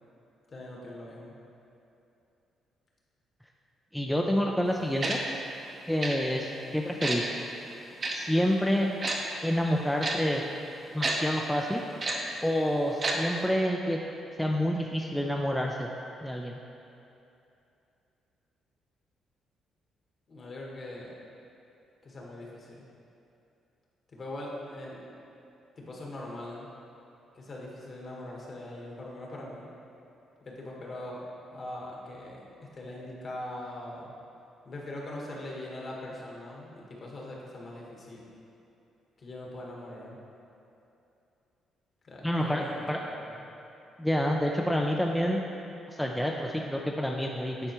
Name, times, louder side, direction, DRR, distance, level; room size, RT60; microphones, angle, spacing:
voice 1, 0.5-1.3 20.3-21.1 22.0-22.8 24.1-25.0 25.8-26.7 27.3-29.7 30.4-34.1 34.6-38.2 39.2-40.2 42.0-43.4, left 1 dB, 45° left, -3 dB, 1.4 m, -41 dB
voice 2, 3.9-5.2 5.9-7.3 8.1-8.9 9.4-10.4 10.9-11.9 12.4-14.0 14.4-15.9 16.2-16.6 42.2-43.0 44.0-45.4 45.9-47.7, equal, 5° left, 0 dB, 0.4 m, -28 dB
Tick-tock, 5.0-5.2 6.0-6.2 7.0-7.2 8.0-8.1 9.0-9.2 10.0-10.2 11.0-11.2 12.0-12.2 13.0-13.2 13.4-13.5, right 3 dB, 40° right, 0.8 m, -29 dB
9.9 x 4.3 x 3.0 m, 2.8 s
cardioid pair, 90°, 0 cm